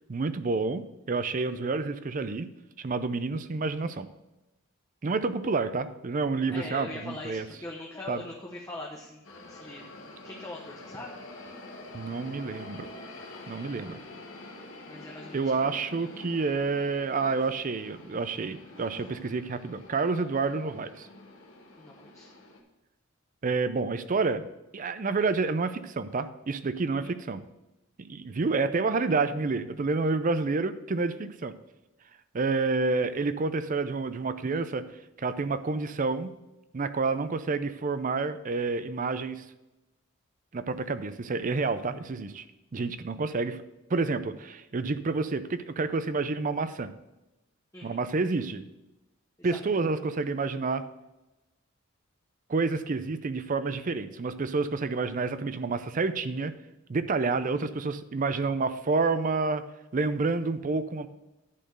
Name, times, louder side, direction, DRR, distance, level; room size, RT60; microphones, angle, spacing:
voice 1, 0.1-2.5 2.8-4.1 5.0-7.4 8.1-8.2 11.9-12.9 13.5-14.0 15.3-21.1 23.4-24.5 24.7-27.4 28.0-31.5 32.3-34.9 35.2-36.3 36.7-39.4 40.5-42.4 42.7-43.6 43.9-46.9 47.8-48.6 49.4-50.8 52.5-56.5 56.9-59.6 59.9-61.1, right 4 dB, 40° right, 12 dB, 0.5 m, -29 dB
voice 2, 6.5-11.1 14.8-15.9 21.8-22.3 26.9-27.1 47.7-48.0 49.4-49.6, left 2 dB, 15° left, -2 dB, 0.8 m, -42 dB
sound 1, 9.2-22.6, left 2 dB, 65° left, 1.4 m, -47 dB
10.5 x 4.4 x 6.6 m, 0.99 s
head